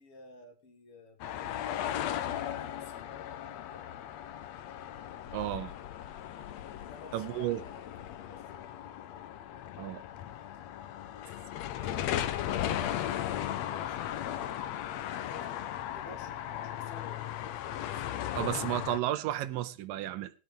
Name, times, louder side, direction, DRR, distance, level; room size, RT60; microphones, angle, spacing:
voice 1, 0.0-2.0 2.5-3.9 6.8-8.7 11.8-18.2, left 3 dB, 45° left, 2.6 m, -53 dB
sound 1, 1.2-19.0, left 11 dB, 70° left, 1.7 m, -37 dB
voice 2, 5.3-5.7 7.1-7.6 9.8-10.0 18.3-20.3, right 13 dB, 80° right, 2.4 m, -32 dB
20.0 x 9.0 x 3.4 m
omnidirectional pair, 4.0 m